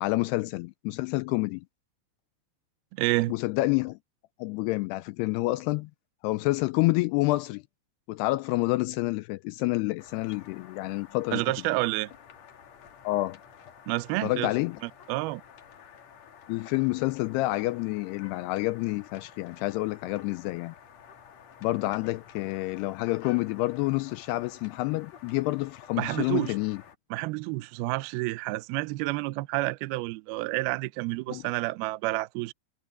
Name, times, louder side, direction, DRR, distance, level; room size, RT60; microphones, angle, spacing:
voice 1, 0.0-1.6 3.3-4.0 4.4-5.9 6.2-7.6 8.1-11.4 13.0-13.4 14.2-14.8 16.5-20.7 21.6-26.8 31.3-31.4, left 20 dB, 85° left, 2.3 m, -28 dB
voice 2, 3.0-3.3 11.3-12.1 13.9-14.5 14.8-15.4 26.0-26.6 27.1-32.5, right 21 dB, 85° right, 2.2 m, -29 dB
sound 1, 10.0-26.9, left 7 dB, 55° left, 2.1 m, -51 dB
omnidirectional pair, 5.2 m